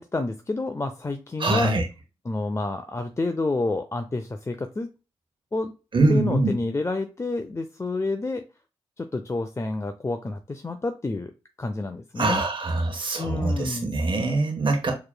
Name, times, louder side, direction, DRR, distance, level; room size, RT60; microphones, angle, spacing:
voice 1, 0.0-1.7 2.3-4.9 5.5-5.7 6.1-8.4 9.0-11.3 11.6-12.4 13.2-13.9, left 2 dB, 25° left, 6 dB, 0.5 m, -29 dB
voice 2, 1.4-1.8 5.9-6.6 12.2-14.9, right 2 dB, 50° right, 3 dB, 1.2 m, -23 dB
4.9 x 3.2 x 2.2 m, 0.30 s
cardioid pair, 50°, 11 cm